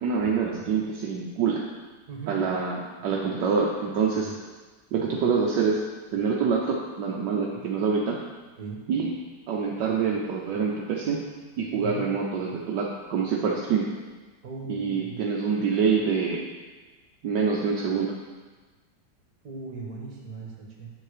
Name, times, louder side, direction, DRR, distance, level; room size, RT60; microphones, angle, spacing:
voice 1, 0.0-1.6 2.3-4.3 4.9-5.8 6.1-8.2 8.9-9.1 9.5-11.2 11.6-13.9 14.7-16.4 17.2-18.1, right 5 dB, 80° right, -2 dB, 1.5 m, -26 dB
voice 2, 2.1-2.4 4.2-4.3 8.6-8.8 11.7-12.1 14.4-15.3 19.4-20.9, right 4 dB, 60° right, -1 dB, 2.1 m, -38 dB
7.4 x 7.3 x 4.9 m, 1.3 s
omnidirectional pair, 1.9 m